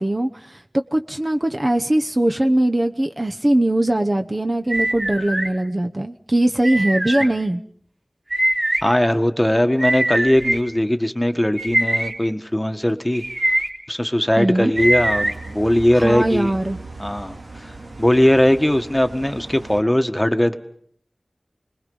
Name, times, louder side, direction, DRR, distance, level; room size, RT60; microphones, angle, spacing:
voice 1, 0.0-7.6 14.4-14.7 16.0-16.8, right 1 dB, 30° right, 6 dB, 0.9 m, -21 dB
sound 1, 4.7-5.5 6.6-7.3 8.3-8.8 9.8-10.6 11.6-12.1 13.1-13.7 14.8-15.3, right 1 dB, 65° right, 3.8 m, -22 dB
voice 2, 8.8-13.2 13.9-16.5 17.0-20.5, left 1 dB, 10° left, 8 dB, 1.5 m, -19 dB
sound 2, 14.7-19.8, right 2 dB, 80° right, 2.7 m, -38 dB
29.5 x 21.0 x 5.5 m, 0.62 s
wide cardioid pair, 65°, 0 cm